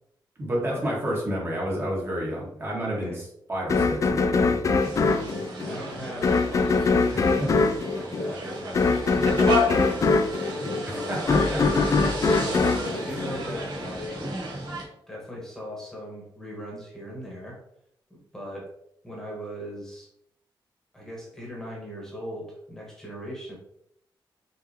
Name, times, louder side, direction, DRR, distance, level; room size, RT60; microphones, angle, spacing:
voice 1, 0.4-5.0 7.1-7.5 10.9-11.8 12.2-12.4, equal, 25° right, -4 dB, 1.6 m, -31 dB
voice 2, 2.9-3.2 4.9-11.7 12.4-14.3 15.1-17.6 18.1-18.7 19.0-20.1 20.9-23.5, equal, 5° left, -3 dB, 1.4 m, -39 dB
sound 1, 3.7-13.9, left 4 dB, 40° left, 0.4 m, -23 dB
sound 2, 4.8-14.8, equal, 55° right, 1.4 m, -32 dB
5.7 x 2.9 x 2.9 m, 0.73 s
wide cardioid pair, 145°, 9 cm